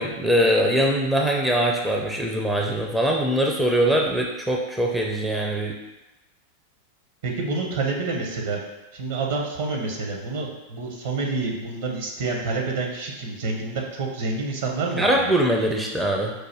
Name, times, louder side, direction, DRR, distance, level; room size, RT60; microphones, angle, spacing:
voice 1, 0.0-5.8 15.0-16.3, right 1 dB, 5° right, -1 dB, 0.5 m, -22 dB
voice 2, 7.2-8.6 8.9-15.3, right 3 dB, 55° right, 0 dB, 0.9 m, -28 dB
4.7 x 2.4 x 4.6 m, 1.0 s
figure-of-eight pair, 90°, 0 cm